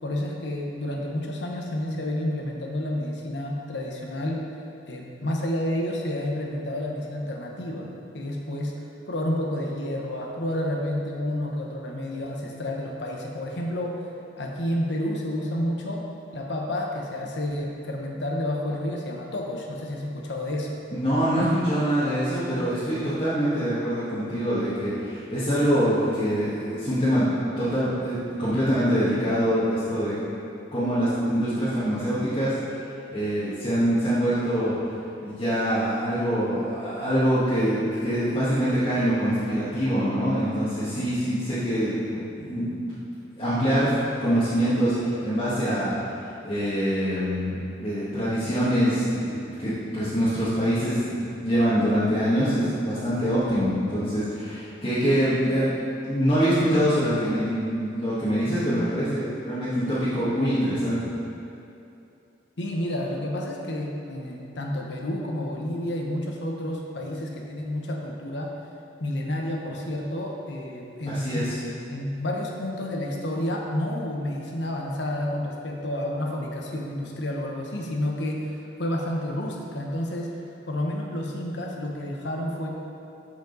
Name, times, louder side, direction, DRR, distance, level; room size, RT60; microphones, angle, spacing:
voice 1, 0.0-4.4 4.9-8.7 9.1-14.0 14.4-16.0 16.3-20.8 62.6-68.5 69.0-71.4 71.9-80.3 80.7-82.7, left 1 dB, 70° left, 0 dB, 1.1 m, -30 dB
voice 2, 20.9-27.3 27.6-30.2 30.7-32.7 33.1-34.7 35.2-42.8 43.4-43.9 44.2-45.9 46.4-61.1 71.1-71.5, equal, 30° left, -13 dB, 1.7 m, -24 dB
12.0 x 5.2 x 4.0 m, 2.8 s
head